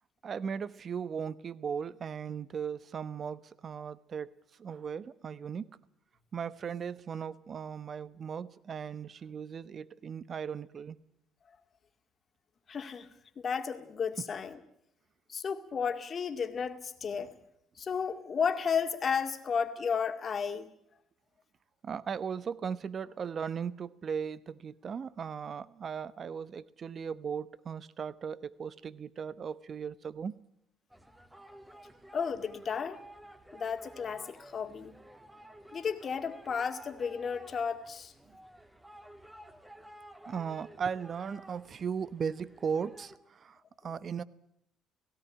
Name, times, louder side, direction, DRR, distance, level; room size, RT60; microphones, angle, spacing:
voice 1, 0.2-4.3 4.6-5.7 6.3-11.0 21.8-30.3 40.2-44.2, right 6 dB, 45° right, 17 dB, 1.0 m, -37 dB
voice 2, 12.7-13.1 13.4-14.6 15.3-17.3 17.8-20.7 32.1-33.0 33.5-34.9 35.7-38.1, left 6 dB, 45° left, 7 dB, 2.2 m, -33 dB
sound 1, 30.9-43.2, right 1 dB, 5° right, 2.3 m, -53 dB
17.5 x 17.0 x 9.9 m, 0.75 s
supercardioid pair, 65°, 0 cm